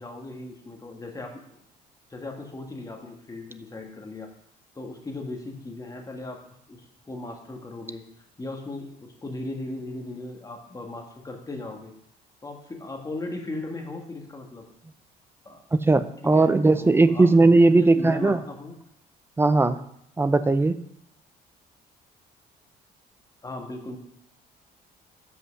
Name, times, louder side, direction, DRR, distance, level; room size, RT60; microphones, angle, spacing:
voice 1, 0.0-1.4 2.1-4.3 4.7-6.4 6.7-8.0 8.4-11.9 12.4-14.6 15.4-15.6 16.3-16.5 16.8-17.3 17.7-18.8 23.4-24.0, left 2 dB, 20° left, 2 dB, 1.5 m, -37 dB
voice 2, 15.7-18.4 19.4-19.8 20.2-20.8, right 3 dB, 15° right, 12 dB, 0.5 m, -18 dB
7.6 x 5.5 x 6.3 m, 0.73 s
cardioid pair, 110°, 17 cm